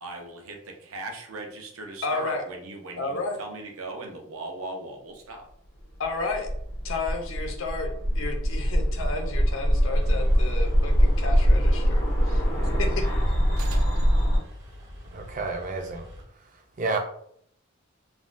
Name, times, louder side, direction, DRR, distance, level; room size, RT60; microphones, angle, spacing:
voice 1, 0.0-5.4 13.6-14.3, right 2 dB, 85° right, 2 dB, 0.6 m, -39 dB
voice 2, 2.0-2.4 3.0-3.4 6.0-6.5 6.8-13.0, left 3 dB, 70° left, 3 dB, 0.6 m, -32 dB
sound 1, 6.0-14.4, equal, 90° left, 0.9 m, -23 dB
sound 2, 9.9-16.2, equal, 60° right, 0.8 m, -46 dB
voice 3, 15.1-16.1 16.8-17.0, right 3 dB, 40° right, 4 dB, 0.4 m, -29 dB
3.4 x 2.2 x 2.5 m, 0.68 s
head